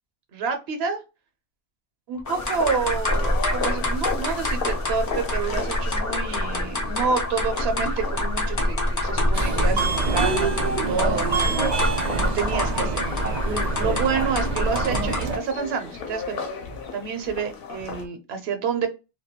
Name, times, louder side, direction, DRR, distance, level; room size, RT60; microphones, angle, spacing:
voice 1, 0.3-1.0 2.1-13.1 13.7-16.4 16.9-18.9, right 5 dB, 80° right, 7 dB, 0.9 m, -28 dB
sound 1, 2.3-18.1, left 5 dB, 70° left, 0.8 m, -36 dB
sound 2, 2.3-15.4, left 1 dB, 30° left, 0.3 m, -26 dB
Subway metro underground, 9.3-15.4, right 4 dB, 55° right, 0.5 m, -26 dB
2.2 x 2.2 x 2.8 m, 0.28 s
omnidirectional pair, 1.1 m